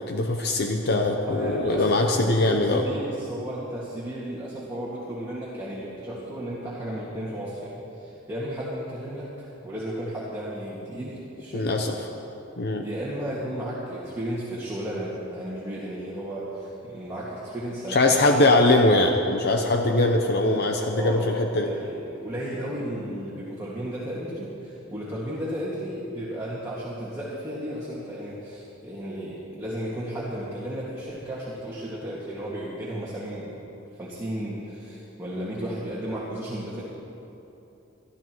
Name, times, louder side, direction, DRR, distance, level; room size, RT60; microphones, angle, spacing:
voice 1, 0.0-2.9 11.5-11.9 12.6-12.8 17.9-21.7, left 2 dB, 55° left, 3 dB, 0.8 m, -22 dB
voice 2, 1.2-11.8 12.8-18.5 19.9-36.8, right 1 dB, 15° right, -7 dB, 2.0 m, -34 dB
24.5 x 13.0 x 3.1 m, 3.0 s
head